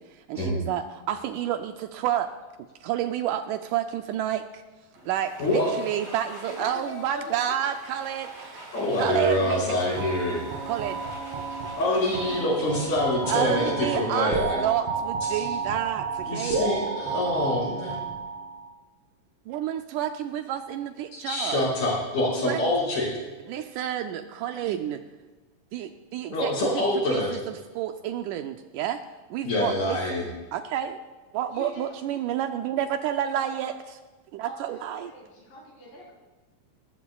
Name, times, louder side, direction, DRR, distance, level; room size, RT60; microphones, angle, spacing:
voice 1, 0.0-2.3 2.8-4.6 5.1-8.7 9.0-10.0 10.7-11.0 13.3-16.6 19.5-21.6 22.4-22.6 23.5-25.0 25.7-26.8 27.1-29.0 29.3-30.0 30.5-31.0 31.3-34.0 34.3-35.1, right 10 dB, 80° right, 7 dB, 1.9 m, -30 dB
Domestic sounds home sounds, 4.9-13.9, right 1 dB, 25° right, 4.0 m, -46 dB
voice 2, 5.4-5.7 8.7-10.4 11.8-14.7 15.3-15.4 16.2-18.0 21.1-23.1 26.3-27.3 29.4-30.3, left 1 dB, 55° left, -4 dB, 6.2 m, -26 dB
sound 1, 10.0-18.7, right 4 dB, 50° right, 2.2 m, -32 dB
voice 3, 10.6-11.1 11.4-12.0 31.5-31.8 33.3-33.7 34.4-36.1, left 1 dB, 85° left, -4 dB, 6.0 m, -43 dB
19.5 x 14.5 x 2.3 m, 1.2 s
omnidirectional pair, 3.9 m